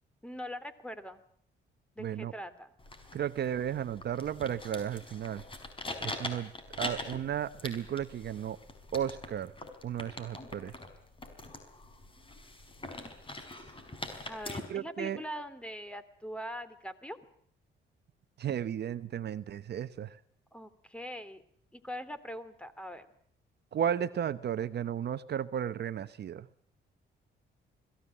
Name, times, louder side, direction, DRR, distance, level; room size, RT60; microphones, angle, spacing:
voice 1, 0.2-1.2 2.0-2.7 14.2-17.2 20.5-21.4 21.7-23.1, equal, 5° left, 13 dB, 2.7 m, -42 dB
voice 2, 2.0-2.3 3.1-5.4 6.0-6.5 6.8-8.6 8.9-9.5 9.8-10.7 14.7-15.2 18.4-20.2 23.7-26.5, right 9 dB, 55° right, 14 dB, 0.9 m, -34 dB
sound 1, 2.8-14.6, left 2 dB, 25° left, 5.3 m, -43 dB
22.5 x 15.5 x 9.8 m, 0.66 s
cardioid pair, 90°, 20 cm